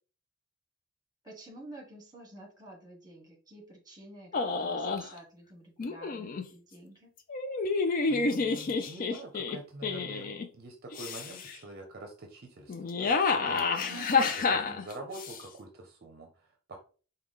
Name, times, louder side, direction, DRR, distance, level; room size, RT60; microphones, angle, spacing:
voice 1, 1.2-7.1 13.9-14.8, right 1 dB, 20° right, 0 dB, 1.3 m, -49 dB
sound 1, 4.3-5.1 5.8-6.4 7.3-10.5 10.9-11.5 12.7-15.4, left 4 dB, 40° left, 0.4 m, -29 dB
voice 2, 8.1-13.9 14.7-16.8, right 2 dB, 50° right, 3 dB, 0.6 m, -46 dB
4.7 x 2.2 x 3.6 m, 0.38 s
head